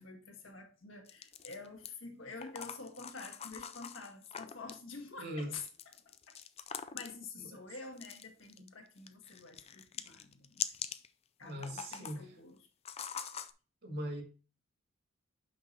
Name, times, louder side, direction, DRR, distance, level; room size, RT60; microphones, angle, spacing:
voice 1, 0.0-5.7 6.0-6.4 6.9-10.8 11.4-12.6, left 4 dB, 70° left, 2 dB, 1.7 m, -48 dB
sound 1, 1.1-1.9 2.4-4.8 5.7-7.2 8.0-8.7 9.0-11.1 11.5-12.2 12.9-13.5, left 8 dB, 30° left, 0.4 m, -43 dB
voice 2, 5.2-5.5 7.4-7.6 8.6-8.7 11.4-12.3 13.8-14.2, equal, 55° right, 3 dB, 2.2 m, -40 dB
5.9 x 5.6 x 4.5 m, 0.34 s
head